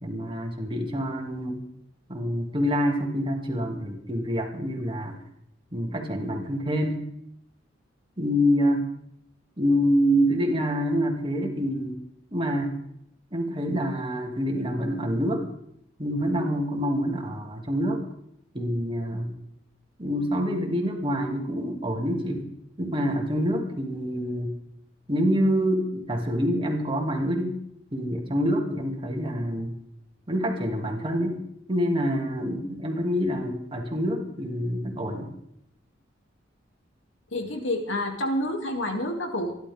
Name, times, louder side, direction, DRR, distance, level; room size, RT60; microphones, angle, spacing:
voice 1, 0.0-1.6 2.1-5.2 5.7-7.0 8.2-8.8 9.6-12.0 12.3-12.8 13.3-15.4 16.0-18.0 18.5-19.3 20.0-22.5 22.8-24.5 25.1-27.6 27.9-29.8 30.3-31.4 31.7-35.3, equal, 30° right, 2 dB, 2.5 m, -26 dB
voice 2, 37.3-39.5, left 1 dB, 85° left, 2 dB, 2.7 m, -28 dB
27.0 x 11.5 x 3.6 m, 0.74 s
head